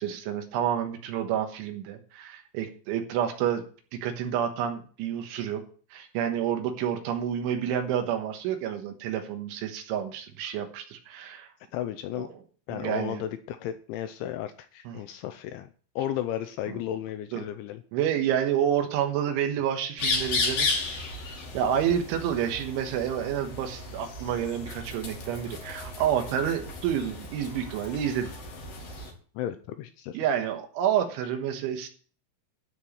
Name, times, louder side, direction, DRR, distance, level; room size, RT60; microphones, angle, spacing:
voice 1, 0.0-3.6 3.9-5.6 5.9-11.5 12.2-12.3 12.7-13.2 14.9-15.0 17.3-17.4 17.9-20.9 21.5-28.3 30.1-31.9, right 9 dB, 75° right, 6 dB, 3.5 m, -29 dB
voice 2, 11.7-12.3 12.7-15.7 16.0-17.8 29.4-30.2, left 11 dB, 80° left, 9 dB, 2.8 m, -34 dB
sound 1, 20.0-29.1, left 3 dB, 50° left, 4.0 m, -34 dB
13.0 x 4.6 x 8.5 m, 0.42 s
omnidirectional pair, 5.9 m